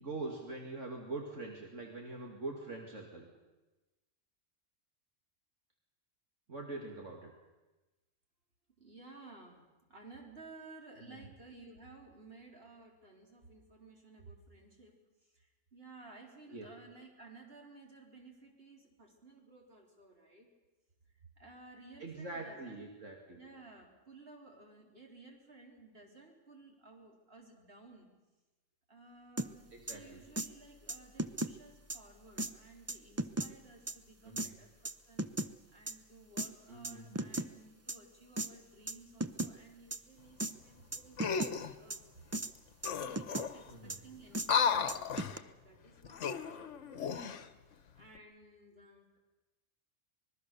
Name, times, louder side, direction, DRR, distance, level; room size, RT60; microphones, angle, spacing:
voice 1, 0.0-3.3 6.5-7.3 11.0-11.2 16.5-16.6 22.0-23.4 29.7-30.2 34.2-34.5 36.7-37.2 43.7-44.0, right 2 dB, 70° right, 1 dB, 2.7 m, -43 dB
voice 2, 8.8-9.6 9.9-14.9 15.2-20.5 21.2-22.9 23.3-28.1 28.9-35.3 35.7-42.2 43.1-49.1, right 3 dB, 50° right, 1 dB, 4.0 m, -56 dB
sound 1, 29.4-29.5 29.9-30.0 30.4-30.5 30.9-31.5 31.9-32.0 32.4-32.5 32.9-33.5 33.9-34.0 34.4-34.5 34.9-35.5 35.9-36.0 36.4-36.5 36.8-37.5 37.9-38.0 38.4-38.5 38.9-39.0 39.2-39.5 39.9-40.0 40.4-40.5 40.9-41.5 41.9-42.0 42.3-42.5 42.8-43.5 43.9-44.0 44.3-44.5 44.9-45.4, right 2 dB, 20° right, 0.5 m, -36 dB
sound 2, 41.2-41.7 42.5-42.6 42.8-43.7 44.4-45.4 46.0-47.5 48.0-48.2, left 6 dB, 70° left, 1.3 m, -34 dB
25.5 x 20.5 x 6.8 m, 1.1 s
omnidirectional pair, 1.3 m